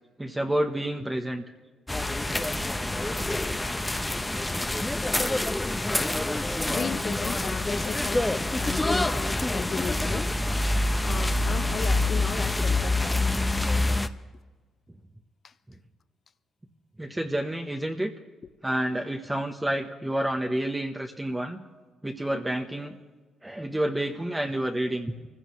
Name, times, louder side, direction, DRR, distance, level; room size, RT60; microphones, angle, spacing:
voice 1, 0.2-1.4 17.0-18.1 18.6-21.6 22.0-22.9 23.4-25.1, right 1 dB, 10° right, 1.0 m, -29 dB
sound 1, 1.9-14.1, left 2 dB, 15° left, 0.7 m, -26 dB
voice 2, 6.7-10.3 11.0-13.3 15.4-15.5, left 6 dB, 50° left, 0.6 m, -35 dB
24.5 x 15.5 x 3.1 m
cardioid pair, 90°, 0 cm